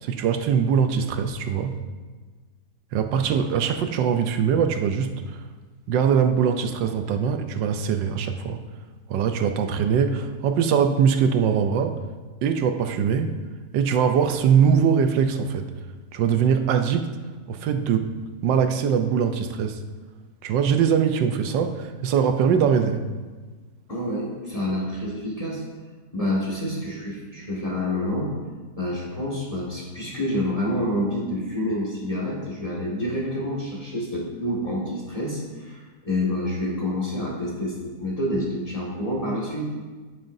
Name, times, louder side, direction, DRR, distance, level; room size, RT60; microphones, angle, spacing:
voice 1, 0.0-1.8 2.9-5.4 5.9-8.6 9.1-12.0 12.4-13.3 13.7-15.7 16.1-17.2 17.5-18.2 18.4-19.8 20.4-23.0, right 7 dB, 90° right, 7 dB, 1.4 m, -22 dB
voice 2, 23.9-25.6 26.1-28.3 28.8-39.7, left 1 dB, 20° left, -5 dB, 1.8 m, -28 dB
11.0 x 8.7 x 2.7 m, 1.4 s
omnidirectional pair, 1.9 m